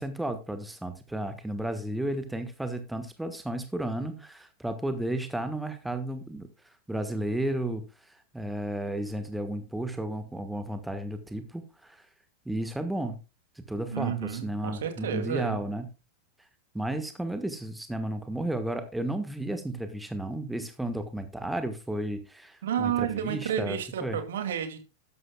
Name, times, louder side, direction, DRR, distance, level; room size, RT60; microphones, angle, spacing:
voice 1, 0.0-6.5 6.9-12.1 12.4-13.2 13.5-15.8 16.7-24.2, right 1 dB, 5° right, 1.4 m, -33 dB
voice 2, 13.9-15.6 22.6-24.8, right 9 dB, 60° right, 2.4 m, -31 dB
13.0 x 11.5 x 2.3 m
figure-of-eight pair, 90°, 0 cm